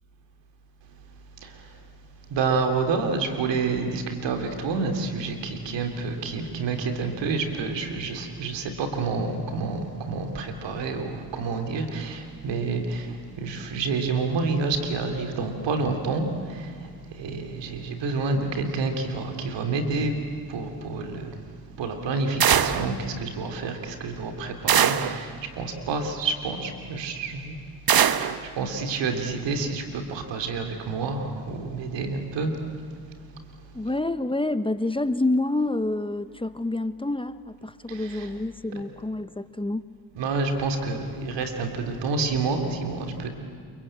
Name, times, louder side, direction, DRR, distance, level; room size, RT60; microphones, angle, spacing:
voice 1, 1.4-1.8 2.3-20.2 20.5-21.4 21.8-27.6 27.9-32.9 33.3-33.4 37.9-38.3 40.1-43.3, right 4 dB, 75° right, 5 dB, 3.3 m, -29 dB
sound 1, 22.4-22.9 24.7-25.2 27.9-28.4, right 9 dB, 55° right, 1.3 m, -21 dB
voice 2, 33.7-39.8, left 2 dB, 10° left, 12 dB, 1.1 m, -28 dB
29.0 x 23.0 x 9.0 m, 2.2 s
supercardioid pair, 50°, 43 cm